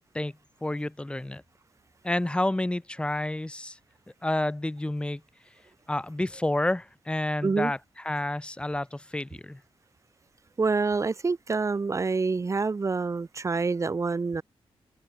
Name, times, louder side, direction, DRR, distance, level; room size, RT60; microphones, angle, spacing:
voice 1, 0.1-1.4 2.0-3.8 4.2-5.2 5.9-9.6, left 1 dB, 10° left, 2.0 m, -30 dB
voice 2, 10.6-14.4, right 4 dB, 30° right, 1.2 m, -27 dB
wide cardioid pair, 130°, 10 cm